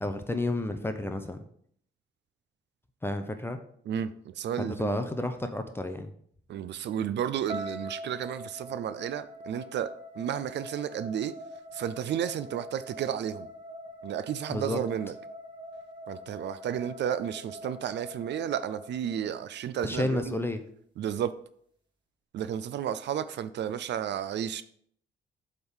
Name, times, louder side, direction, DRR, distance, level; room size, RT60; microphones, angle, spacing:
voice 1, 0.0-1.4 3.0-3.6 4.6-6.1 14.5-14.8 19.8-20.6, left 1 dB, 10° left, 7 dB, 0.7 m, -31 dB
voice 2, 3.9-5.0 6.5-11.3 11.7-13.5 14.0-15.1 16.1-20.4 21.0-21.3 22.3-24.6, right 9 dB, 65° right, 14 dB, 0.5 m, -32 dB
sound 1, 7.5-19.6, equal, 25° right, 1.8 m, -44 dB
7.7 x 3.7 x 5.5 m, 0.64 s
cardioid pair, 90°, 20 cm